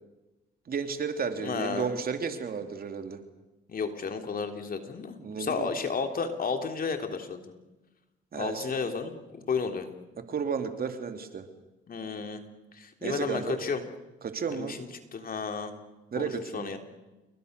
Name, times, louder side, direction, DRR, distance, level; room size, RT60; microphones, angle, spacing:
voice 1, 0.7-3.2 5.2-5.7 8.3-8.7 10.2-11.5 13.0-13.6 14.2-14.8 16.1-16.8, right 6 dB, 50° right, 7 dB, 3.0 m, -33 dB
voice 2, 1.4-1.9 3.7-7.5 8.3-9.9 11.9-12.4 12.7-13.8 14.5-15.7 16.2-16.8, left 5 dB, 45° left, 5 dB, 3.5 m, -32 dB
29.5 x 22.5 x 6.8 m, 1.1 s
cardioid pair, 90°, 20 cm